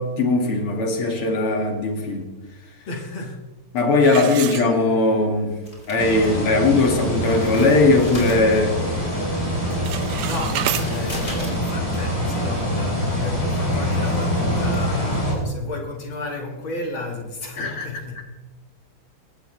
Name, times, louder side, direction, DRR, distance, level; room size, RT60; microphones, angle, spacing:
voice 1, 0.0-2.3 3.7-5.6 5.9-8.8 17.6-17.9, left 3 dB, 90° left, 2 dB, 3.3 m, -19 dB
voice 2, 2.9-3.5 4.1-4.3 10.1-18.3, left 2 dB, 65° left, 1 dB, 2.8 m, -33 dB
sound 1, 4.0-5.3 5.7-5.8 6.4-6.5 6.9-7.2 7.6-8.7 9.0-9.3 9.6-10.9, right 11 dB, 70° right, 1.5 m, -30 dB
sound 2, 5.1-6.9 7.1-15.4, left 1 dB, 35° left, 5.2 m, -39 dB
sound 3, 6.0-15.3, equal, 15° left, 7.3 m, -25 dB
21.5 x 18.5 x 3.4 m, 1.2 s
omnidirectional pair, 2.4 m